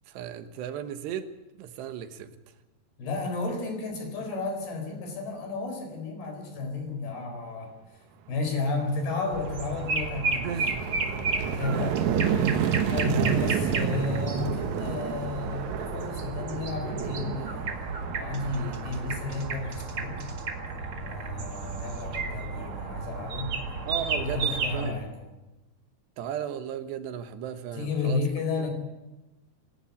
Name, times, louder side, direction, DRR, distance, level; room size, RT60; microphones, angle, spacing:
voice 1, 0.1-1.3 1.5-2.4 10.3-10.9 11.7-12.0 13.1-14.3 14.6-14.7 23.9-25.1 26.2-28.2 28.6-28.7, right 9 dB, 85° right, 9 dB, 3.4 m, -36 dB
voice 2, 3.0-7.7 8.3-10.5 11.5-12.0 12.9-17.7 18.2-20.2 21.1-23.6 24.1-25.1 27.8-28.7, left 3 dB, 70° left, 4 dB, 6.5 m, -32 dB
sound 1, 8.7-8.8 9.3-20.1, right 8 dB, 70° right, 1.8 m, -31 dB
sound 2, 9.3-24.9, right 4 dB, 40° right, 2.1 m, -33 dB
25.0 x 11.5 x 9.9 m, 1.0 s
omnidirectional pair, 4.7 m